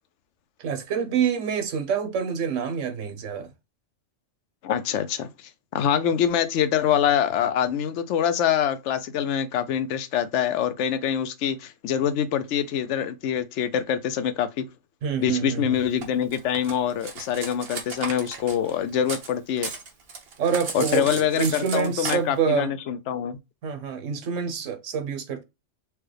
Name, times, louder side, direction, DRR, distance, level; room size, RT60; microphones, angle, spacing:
voice 1, 0.6-3.5 15.0-15.6 20.4-22.7 23.6-25.4, right 6 dB, 85° right, 1.1 m, -26 dB
voice 2, 4.6-5.3 5.7-14.7 15.2-19.7 20.7-23.4, left 9 dB, 75° left, 0.9 m, -25 dB
Cutlery silverware, 16.0-19.3 19.6-22.2, right 5 dB, 55° right, 1.0 m, -35 dB
4.5 x 2.3 x 3.2 m
omnidirectional pair, 1.3 m